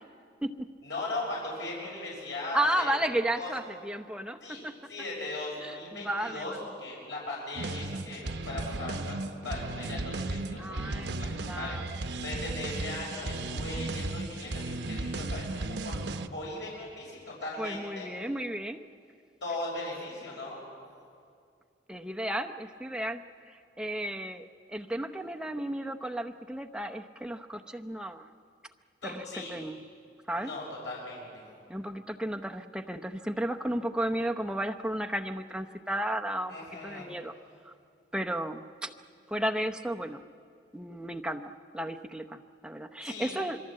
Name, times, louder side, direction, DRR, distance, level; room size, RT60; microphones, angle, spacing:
voice 1, 0.8-2.9 3.4-3.5 4.4-4.6 4.9-6.5 6.8-11.8 12.2-16.0 16.3-18.1 19.4-20.6 29.0-29.5 30.3-31.3 36.5-37.1 43.0-43.3, left 2 dB, 85° left, -3 dB, 6.4 m, -38 dB
voice 2, 2.5-4.7 5.6-6.6 10.6-11.9 17.6-18.9 21.9-28.3 29.0-29.8 30.3-30.5 31.7-36.6 36.8-37.3 37.6-37.7 38.1-38.9 39.3-40.2 40.7-43.6, right 1 dB, 5° right, 6 dB, 0.8 m, -33 dB
sound 1, 7.6-16.3, right 2 dB, 75° right, 0.9 m, -35 dB
26.5 x 22.5 x 7.7 m, 2.3 s
head